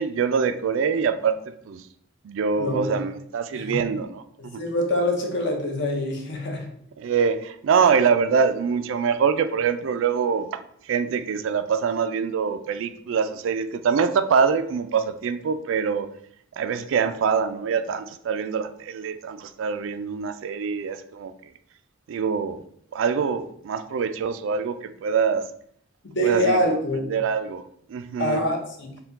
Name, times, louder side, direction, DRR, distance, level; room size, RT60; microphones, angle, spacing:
voice 1, 0.0-1.4 1.7-1.8 2.2-4.6 7.0-10.6 10.9-16.1 16.6-21.3 22.1-22.6 22.9-25.4 26.2-26.6 27.1-28.4, right 6 dB, 70° right, 11 dB, 0.3 m, -24 dB
voice 2, 2.6-3.0 3.5-3.8 4.6-6.7 26.0-27.1 28.2-28.9, equal, 60° left, 1 dB, 0.9 m, -25 dB
4.2 x 2.2 x 3.9 m, 0.67 s
head